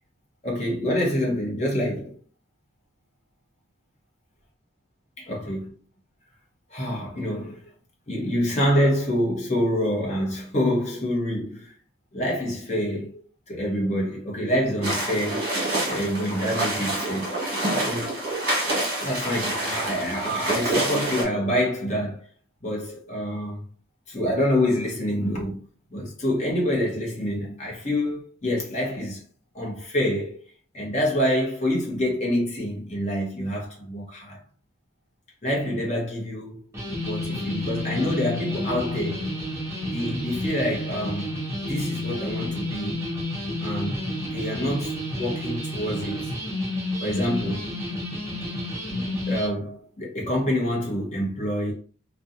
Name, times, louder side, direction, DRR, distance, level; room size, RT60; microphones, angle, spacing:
voice 1, 0.4-2.2 5.2-5.7 6.7-7.6 8.1-11.7 12.1-13.2 13.5-15.6 15.9-17.4 17.7-18.2 19.0-22.2 22.6-23.6 24.1-25.6 25.9-29.2 29.5-30.4 30.7-34.4 35.4-36.7 37.0-39.4 39.9-41.3 41.7-43.0 43.6-46.3 47.0-47.7 49.3-51.7, equal, 35° left, 0.8 m, -26 dB
sound 1, 14.8-21.2, right 1 dB, 45° right, 1.1 m, -27 dB
sound 2, 36.7-49.5, left 1 dB, 15° right, 0.7 m, -30 dB
2.4 x 2.2 x 2.6 m
head